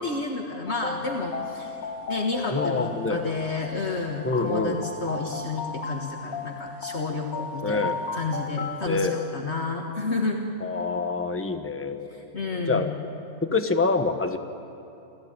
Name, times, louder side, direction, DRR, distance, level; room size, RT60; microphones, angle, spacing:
voice 1, 0.0-1.8 2.1-10.4 12.3-13.0, left 3 dB, 50° left, 1 dB, 1.7 m, -30 dB
sound 1, 0.7-8.9, left 4 dB, 80° left, 1.8 m, -35 dB
voice 2, 2.5-3.3 4.2-4.8 7.6-8.0 8.8-9.2 10.6-12.9 13.4-14.4, left 3 dB, 10° left, 6 dB, 0.9 m, -26 dB
28.0 x 14.5 x 8.9 m, 2.7 s
omnidirectional pair, 1.5 m